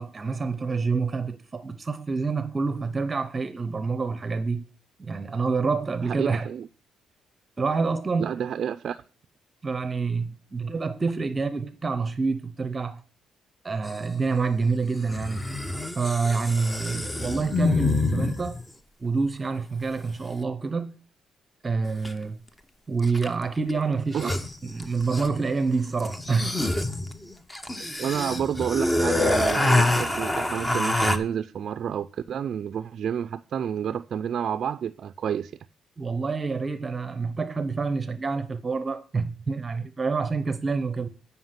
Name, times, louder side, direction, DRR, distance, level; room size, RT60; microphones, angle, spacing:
voice 1, 0.0-4.6 5.0-6.5 7.6-8.3 9.6-13.0 13.6-15.5 16.0-18.6 19.0-20.9 21.6-22.4 22.9-24.4 24.6-26.5 36.0-41.1, right 4 dB, 30° right, 0.7 m, -27 dB
voice 2, 6.1-6.7 8.2-9.0 16.9-17.0 24.1-24.3 28.0-35.5, right 8 dB, 60° right, 0.4 m, -30 dB
sound 1, 13.9-14.0 15.1-18.6 22.0-22.1 23.0-23.4 23.7-23.8 24.0-25.5 26.0-31.2, left 2 dB, 15° left, 0.9 m, -26 dB
9.4 x 5.6 x 5.8 m
cardioid pair, 90°, 0 cm